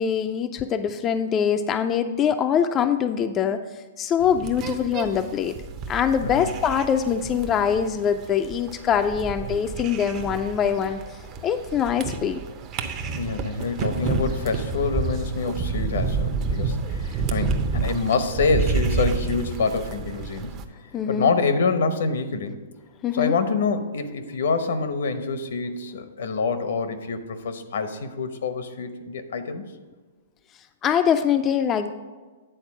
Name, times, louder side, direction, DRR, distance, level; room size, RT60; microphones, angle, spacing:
voice 1, 0.0-3.6 4.0-5.6 5.9-11.0 11.4-12.4 20.9-21.3 23.0-23.3 30.8-31.9, left 8 dB, 20° left, 7 dB, 0.3 m, -23 dB
sound 1, 4.2-20.7, right 4 dB, 30° right, 0.6 m, -29 dB
voice 2, 13.1-20.5 21.1-22.6 23.1-29.7, left 4 dB, 75° left, 10 dB, 0.8 m, -26 dB
9.0 x 4.1 x 6.1 m, 1.3 s
hypercardioid pair, 140°, 0 cm